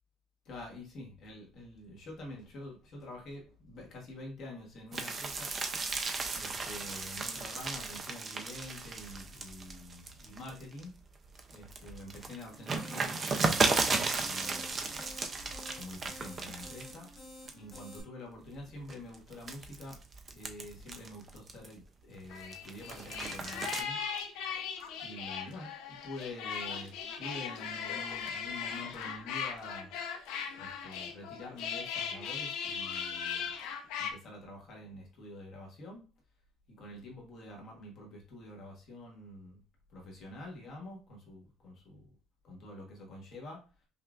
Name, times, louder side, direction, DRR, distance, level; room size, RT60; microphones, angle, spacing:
voice 1, 0.4-5.5 6.3-10.9 11.5-15.0 15.7-17.1 17.5-20.0 20.3-24.0 25.0-25.7 26.0-26.9 27.2-29.9 30.6-33.5 34.0-36.0 36.8-39.6 39.9-42.1 42.4-43.6, left 1 dB, 40° left, -1 dB, 1.0 m, -47 dB
sound 1, 4.9-10.8 11.3-17.2 17.5-18.0 18.5-21.8 22.2-23.8, right 4 dB, 25° right, 0.4 m, -35 dB
sound 2, 12.5-18.0, left 1 dB, 20° left, 1.5 m, -51 dB
sound 3, 22.3-34.1, left 7 dB, 80° left, 0.6 m, -38 dB
5.4 x 2.3 x 2.3 m, 0.36 s
cardioid pair, 180°, 0 cm